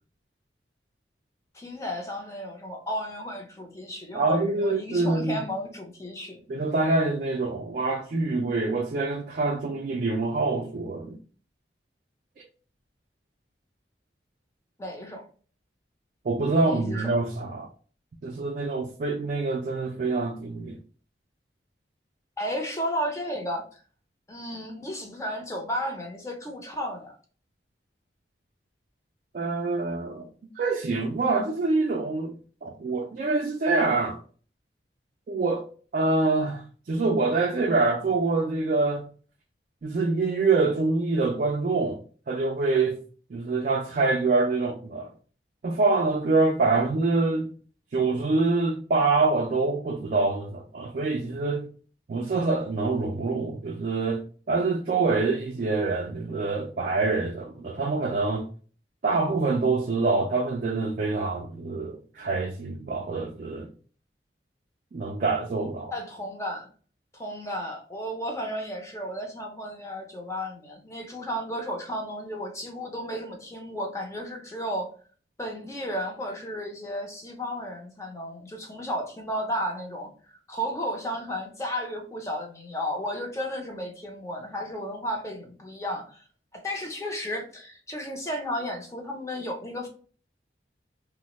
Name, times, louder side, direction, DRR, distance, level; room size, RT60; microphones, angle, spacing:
voice 1, 1.5-6.4 14.8-15.2 16.6-17.1 22.4-23.8 24.3-27.1 65.9-66.7 67.1-74.9 75.4-86.2 86.5-89.9, equal, 15° left, 0.5 m, -33 dB
voice 2, 4.1-5.4 6.5-11.2 12.4-12.5 16.2-17.7 18.2-20.8 29.3-30.3 30.6-32.3 32.6-34.2 35.3-35.6 35.9-39.1 39.8-43.0 43.3-45.1 45.6-47.5 47.9-51.7 52.1-54.2 54.5-58.5 59.0-63.7 64.9-65.9, right 3 dB, 45° right, 0.3 m, -25 dB
3.0 x 2.0 x 2.9 m
head